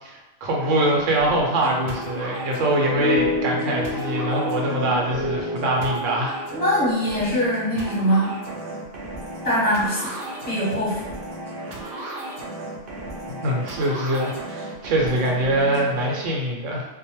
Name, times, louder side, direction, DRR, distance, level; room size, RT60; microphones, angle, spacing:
voice 1, 0.0-6.4 13.3-16.9, right 1 dB, 85° right, -1 dB, 0.9 m, -23 dB
sound 1, 0.6-16.2, right 1 dB, 60° right, 0.6 m, -35 dB
sound 2, 2.5-7.5, left 2 dB, 55° left, 0.3 m, -28 dB
voice 2, 6.5-8.3 9.4-10.1 10.4-11.1, equal, 10° left, -8 dB, 0.9 m, -22 dB
2.2 x 2.1 x 2.9 m, 1.1 s
omnidirectional pair, 1.3 m